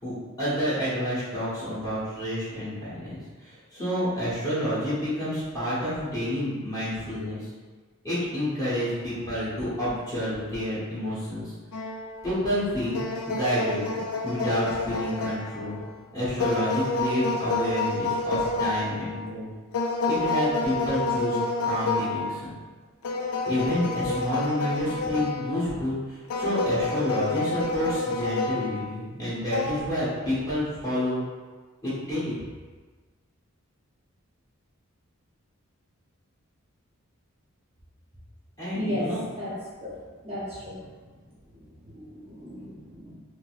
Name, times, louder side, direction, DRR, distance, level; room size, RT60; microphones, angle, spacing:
voice 1, 0.0-7.5 8.0-11.5 12.2-13.0 13.3-13.8 14.2-15.8 16.1-19.5 20.1-21.4 21.6-22.6 23.4-31.2 31.8-32.4 38.6-39.3, equal, 15° left, -11 dB, 1.3 m, -29 dB
sound 1, 11.7-12.5 12.9-15.9 16.4-19.4 19.7-22.4 23.0-25.8 26.3-29.0 29.5-29.8, left 3 dB, 80° left, 0.4 m, -29 dB
voice 2, 38.7-39.5 39.8-40.0 40.2-40.8 41.9-43.1, left 1 dB, 25° right, -8 dB, 0.7 m, -34 dB
5.1 x 2.0 x 2.4 m, 1.4 s
head